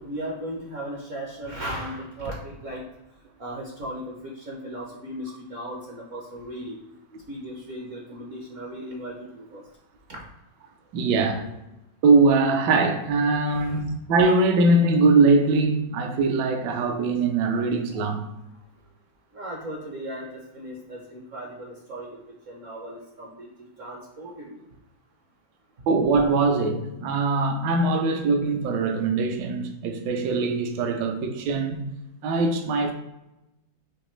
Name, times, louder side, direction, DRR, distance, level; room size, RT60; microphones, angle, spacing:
voice 1, 0.0-2.9 3.4-6.8 7.3-9.6 10.1-10.3 13.4-13.8 19.3-24.6, equal, 55° right, 0.9 m, -37 dB
voice 2, 10.9-11.4 12.0-18.3 25.9-31.9 32.2-32.9, right 3 dB, 70° right, 1.2 m, -22 dB
5.1 x 3.2 x 3.1 m
omnidirectional pair, 2.1 m